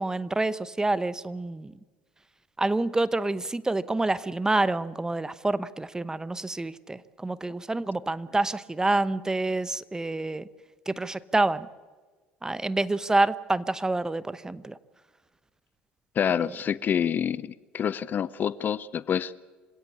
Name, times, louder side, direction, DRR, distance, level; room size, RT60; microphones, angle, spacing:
voice 1, 0.0-1.7 2.6-10.4 10.9-11.7 12.4-14.8 16.4-16.5, right 2 dB, 15° right, 17 dB, 0.9 m, -27 dB
voice 2, 16.2-19.3, left 8 dB, 40° left, 20 dB, 0.6 m, -27 dB
27.0 x 17.0 x 8.6 m, 1.4 s
figure-of-eight pair, 60°, 5 cm